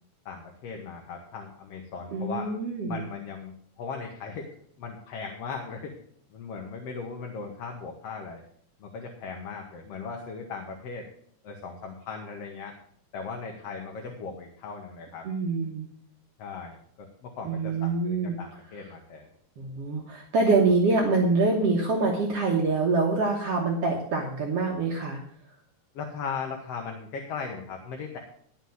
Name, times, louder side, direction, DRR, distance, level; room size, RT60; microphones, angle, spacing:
voice 1, 0.3-2.5 2.9-4.5 4.8-6.0 6.3-8.4 8.8-11.1 11.4-12.7 13.1-15.3 16.4-19.3 25.9-28.2, left 5 dB, 60° left, 2 dB, 2.0 m, -38 dB
voice 2, 2.1-3.0 15.2-15.9 17.5-18.4 19.6-25.2, right 3 dB, 60° right, -1 dB, 2.1 m, -25 dB
11.5 x 5.8 x 7.8 m, 0.63 s
omnidirectional pair, 3.6 m